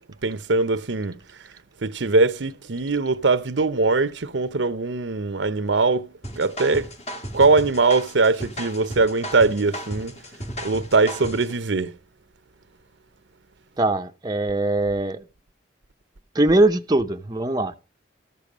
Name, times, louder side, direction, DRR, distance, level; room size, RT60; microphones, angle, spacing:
voice 1, 0.2-1.2 1.8-6.1 6.4-6.9 7.3-10.1 10.6-11.9, right 3 dB, 85° right, 0.8 m, -21 dB
sound 1, 6.2-11.6, equal, 35° left, 2.1 m, -35 dB
voice 2, 13.8-15.2 16.3-17.7, right 2 dB, 20° right, 0.7 m, -21 dB
14.0 x 6.9 x 6.2 m
head